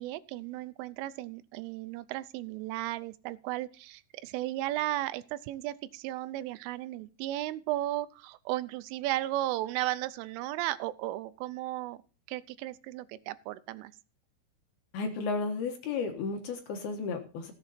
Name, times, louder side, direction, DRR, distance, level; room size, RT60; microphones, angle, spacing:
voice 1, 0.0-12.0 12.3-13.9, right 15 dB, 90° right, 15 dB, 3.2 m, -35 dB
voice 2, 14.9-17.5, left 4 dB, 65° left, 5 dB, 2.8 m, -33 dB
16.5 x 7.8 x 4.2 m, 0.36 s
omnidirectional pair, 5.5 m